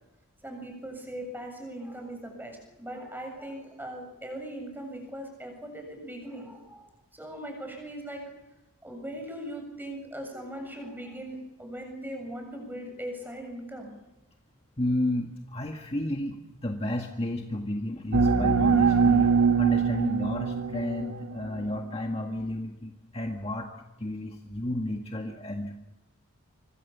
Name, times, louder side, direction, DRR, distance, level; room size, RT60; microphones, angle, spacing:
voice 1, 0.4-6.9 7.1-8.2 8.8-13.9, right 1 dB, 10° right, 3 dB, 7.3 m, -39 dB
voice 2, 14.8-16.4 16.6-19.3 19.6-23.7 24.0-25.7, left 1 dB, 25° left, 2 dB, 1.8 m, -32 dB
sound 1, 18.1-21.6, right 5 dB, 90° right, 1.6 m, -23 dB
26.0 x 25.0 x 7.1 m, 0.96 s
head